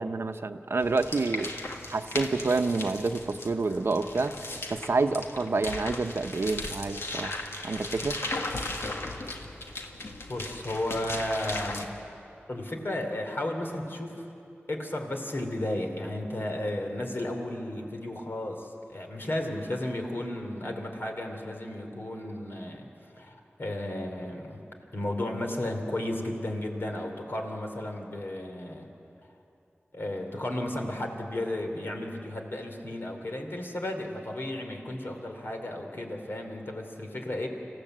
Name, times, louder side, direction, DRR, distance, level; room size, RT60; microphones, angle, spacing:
voice 1, 0.0-1.5 1.9-4.3 4.7-7.3 7.6-8.2, right 3 dB, 75° right, 8 dB, 0.9 m, -28 dB
sound 1, 0.8-11.9, left 2 dB, 85° left, 1.6 m, -37 dB
voice 2, 10.3-12.0 12.5-14.2 14.7-22.9 23.2-24.6 24.9-28.9 29.9-37.5, left 1 dB, 65° left, 2 dB, 3.0 m, -33 dB
26.5 x 15.5 x 7.9 m, 2.7 s
wide cardioid pair, 60°, 4 cm